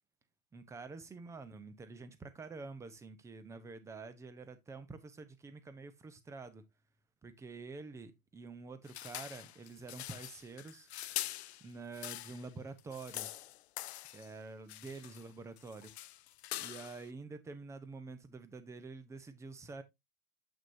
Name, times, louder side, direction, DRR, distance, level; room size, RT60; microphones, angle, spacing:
voice 1, 0.5-6.6 7.2-10.9 11.6-13.3 14.1-15.9 16.6-19.8, right 3 dB, 5° right, 0.6 m, -48 dB
sound 1, 8.9-12.5 12.8-14.3 14.7-15.3 15.6-17.1, left 14 dB, 50° left, 0.5 m, -44 dB
7.9 x 6.1 x 2.6 m
hypercardioid pair, 115°, 44 cm